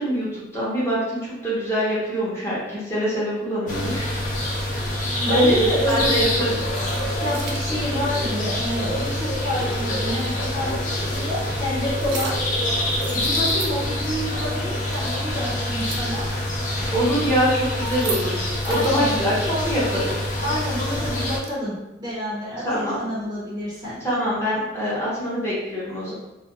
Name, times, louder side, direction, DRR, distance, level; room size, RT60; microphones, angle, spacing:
voice 1, 0.0-4.3 5.3-6.5 16.9-18.4 18.7-20.2 22.6-23.0 24.0-26.1, equal, 15° left, -9 dB, 0.7 m, -24 dB
sound 1, 3.7-21.4, left 1 dB, 40° left, 0.3 m, -26 dB
sound 2, 5.0-5.1 5.9-6.3 6.6-7.7 9.5-9.6 10.6-10.7 11.9-12.5 12.9-14.1 14.4-14.5 14.8-16.2 17.6-19.2 20.8-21.5, right 4 dB, 85° right, 0.4 m, -37 dB
voice 2, 5.2-6.2 7.2-10.7 11.0-12.4 13.1-16.3 16.9-17.3 18.6-19.1 20.4-24.0, left 1 dB, 20° right, -9 dB, 0.6 m, -29 dB
2.3 x 2.1 x 2.8 m, 0.98 s
head